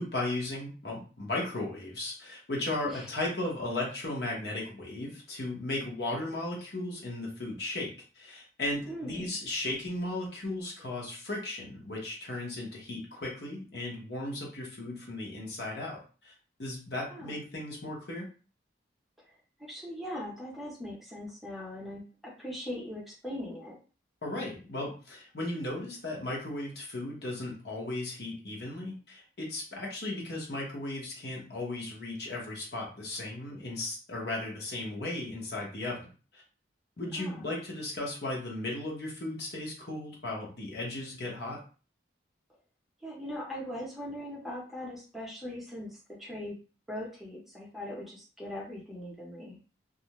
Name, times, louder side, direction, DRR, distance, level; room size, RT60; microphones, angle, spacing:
voice 1, 0.0-16.3 16.6-18.3 24.2-36.1 36.3-36.4 37.0-41.6, left 2 dB, 60° left, -3 dB, 0.9 m, -36 dB
voice 2, 8.9-9.3 17.1-17.4 19.6-23.8 37.2-37.4 43.0-46.6 46.9-49.6, left 1 dB, ahead, -5 dB, 0.6 m, -40 dB
2.4 x 2.1 x 2.9 m, 0.36 s
head